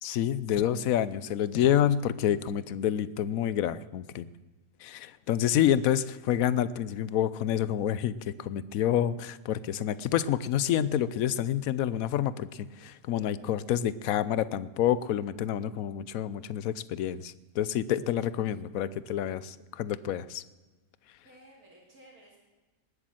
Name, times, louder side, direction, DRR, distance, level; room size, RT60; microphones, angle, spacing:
voice 1, 0.0-4.3 4.8-20.4, left 10 dB, 75° left, 17 dB, 1.1 m, -28 dB
voice 2, 5.2-5.6 21.2-22.4, right 1 dB, 80° right, -5 dB, 3.3 m, -56 dB
20.0 x 8.5 x 7.7 m, 1.2 s
omnidirectional pair, 1.5 m